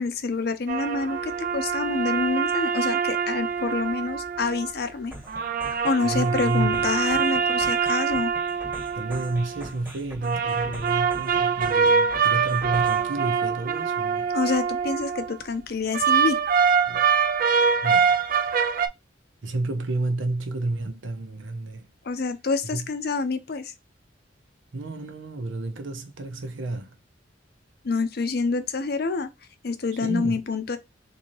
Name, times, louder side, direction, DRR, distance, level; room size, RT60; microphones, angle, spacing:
voice 1, 0.0-5.1 5.7-8.3 14.3-16.4 22.0-23.7 27.8-29.3 29.6-30.8, left 4 dB, 55° left, 0.5 m, -27 dB
sound 1, 0.7-4.7 5.3-9.7 10.2-15.3 15.9-18.9, right 6 dB, 45° right, 0.4 m, -24 dB
sound 2, 5.1-13.1, equal, 10° right, 1.2 m, -43 dB
voice 2, 6.0-6.9 8.9-14.3 16.9-17.1 17.8-18.2 19.4-21.9 22.7-22.9 24.7-26.9 30.0-30.4, right 2 dB, 85° right, 0.8 m, -30 dB
3.7 x 2.7 x 3.1 m
head